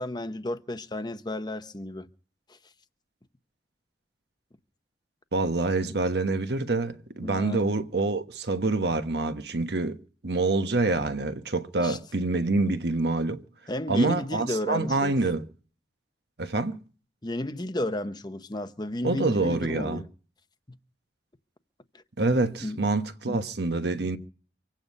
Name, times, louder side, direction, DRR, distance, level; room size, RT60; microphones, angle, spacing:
voice 1, 0.0-2.1 2.5-2.6 7.2-7.7 11.8-12.0 13.7-15.2 17.2-20.1 22.6-22.8 23.3-23.4, left 1 dB, 25° left, 0.9 m, -33 dB
voice 2, 5.3-13.4 13.9-15.5 16.4-16.8 19.0-20.0 22.2-24.2, right 3 dB, 65° right, 1.2 m, -26 dB
25.0 x 9.0 x 5.3 m
head